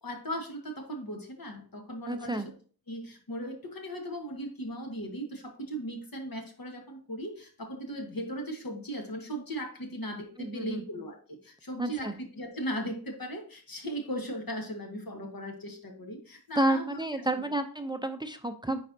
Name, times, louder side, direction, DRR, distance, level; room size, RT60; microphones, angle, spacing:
voice 1, 0.0-2.5 2.9-17.4, equal, 65° left, 3 dB, 1.5 m, -38 dB
voice 2, 2.1-2.5 10.4-10.8 11.8-12.1 16.6-18.8, right 1 dB, 10° right, 8 dB, 0.5 m, -30 dB
9.4 x 4.2 x 2.7 m, 0.42 s
wide cardioid pair, 65°, 38 cm